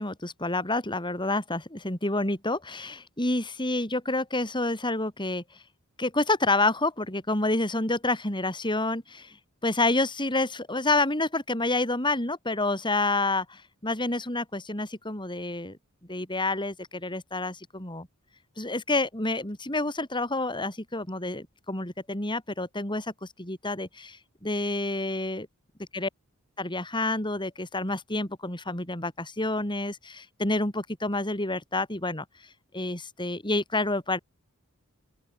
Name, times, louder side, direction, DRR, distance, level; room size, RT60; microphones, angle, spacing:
voice 1, 0.0-5.4 6.0-9.4 9.6-15.8 16.1-18.1 18.6-25.5 25.8-26.1 26.6-32.2 32.7-34.2, left 2 dB, 20° left, 5.7 m, -28 dB
open air
head